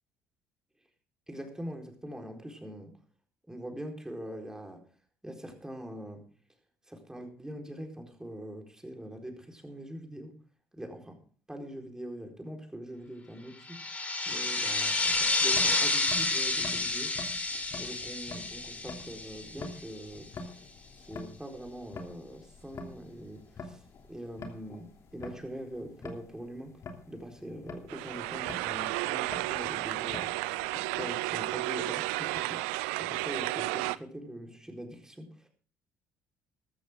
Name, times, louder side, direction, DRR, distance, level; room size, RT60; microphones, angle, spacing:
voice 1, 1.3-2.9 3.5-4.8 5.2-6.2 6.9-10.4 10.7-11.2 11.5-13.8 14.3-17.2 17.7-20.5 21.0-23.8 24.1-24.9 25.1-26.8 27.1-32.6 33.0-35.5, right 1 dB, 10° right, 3 dB, 4.4 m, -43 dB
sound 1, 13.7-20.0, left 2 dB, 20° left, 4.1 m, -30 dB
sound 2, 15.0-31.1, left 3 dB, 50° left, 3.0 m, -47 dB
sound 3, 27.9-34.0, right 20 dB, 75° right, 0.5 m, -32 dB
15.0 x 13.0 x 3.7 m, 0.41 s
hypercardioid pair, 60°, 7 cm